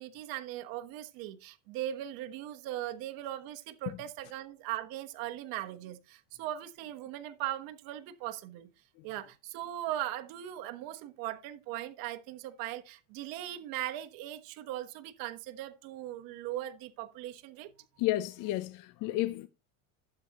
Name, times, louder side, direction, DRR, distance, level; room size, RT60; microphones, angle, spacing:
voice 1, 0.0-8.7 9.0-17.7, right 13 dB, 65° right, 1.3 m, -39 dB
voice 2, 18.0-19.5, left 15 dB, 55° left, 0.7 m, -31 dB
11.5 x 7.9 x 3.0 m
supercardioid pair, 115°, 37 cm